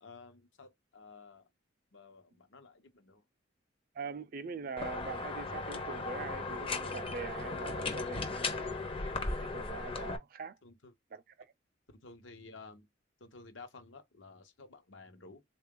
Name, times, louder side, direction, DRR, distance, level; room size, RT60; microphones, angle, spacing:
voice 1, 0.0-1.5 1.9-3.2 10.6-10.9 12.0-12.9 13.2-15.4, left 3 dB, 75° left, 0.9 m, -53 dB
voice 2, 3.9-8.8 9.4-10.6 11.1-11.2, right 5 dB, 50° right, 0.4 m, -43 dB
sound 1, 4.8-10.2, left 3 dB, 30° left, 0.6 m, -37 dB
3.7 x 2.3 x 3.6 m
head